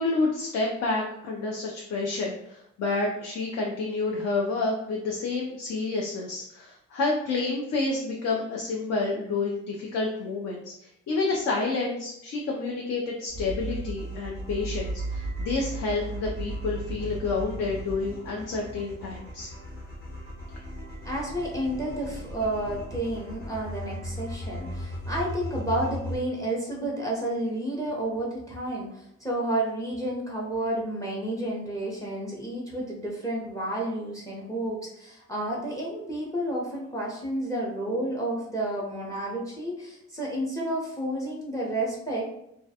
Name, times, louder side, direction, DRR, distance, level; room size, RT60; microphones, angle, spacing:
voice 1, 0.0-19.5, left 3 dB, 60° left, -1 dB, 0.5 m, -29 dB
sound 1, 13.3-26.2, right 1 dB, 35° left, 1.0 m, -36 dB
voice 2, 21.0-42.2, right 1 dB, 10° left, -3 dB, 0.6 m, -31 dB
2.3 x 2.1 x 2.7 m, 0.79 s
cardioid pair, 90°, 30 cm